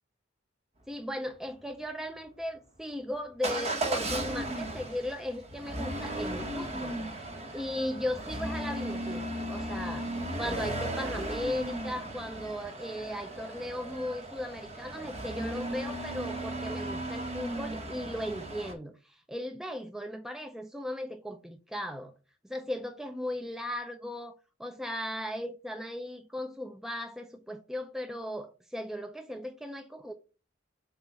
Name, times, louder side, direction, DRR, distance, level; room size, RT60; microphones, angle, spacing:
voice 1, 0.9-22.1 22.4-24.3 24.6-30.1, left 1 dB, 5° right, 0.4 m, -37 dB
Motor vehicle (road) / Engine starting / Accelerating revving vroom, 3.4-18.7, right 1 dB, 35° right, 1.1 m, -36 dB
7.1 x 2.4 x 5.5 m
head